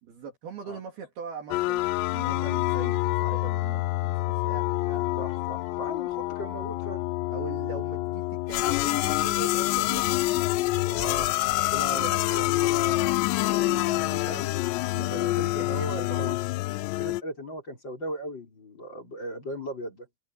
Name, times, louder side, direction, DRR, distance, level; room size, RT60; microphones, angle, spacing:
voice 1, 0.0-5.1 7.3-10.1 11.4-11.6 11.9-12.6 13.4-16.4, right 6 dB, 55° right, 3.9 m, -41 dB
sound 1, 1.5-17.2, left 18 dB, 85° left, 2.5 m, -27 dB
voice 2, 5.2-7.0 10.8-13.2 14.1-14.2 15.1-16.4 17.0-20.1, equal, 25° left, 5.1 m, -37 dB
omnidirectional pair, 5.7 m